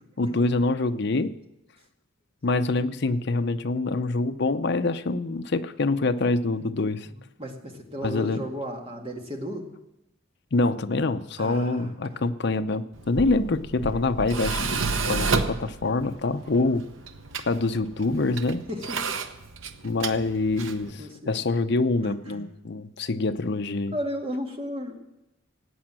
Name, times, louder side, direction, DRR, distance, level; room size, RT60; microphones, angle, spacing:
voice 1, 0.2-1.3 2.4-7.1 8.0-8.5 10.5-16.8 17.5-18.6 19.8-23.9, left 3 dB, 55° left, 11 dB, 0.7 m, -25 dB
voice 2, 7.4-9.7 11.4-12.2 16.4-16.5 18.7-19.2 20.8-21.3 22.0-22.5 23.9-25.0, equal, 25° right, 2 dB, 2.1 m, -34 dB
Tools, 12.9-20.9, right 4 dB, 70° right, 1.0 m, -31 dB
17.5 x 8.9 x 7.6 m, 0.91 s
head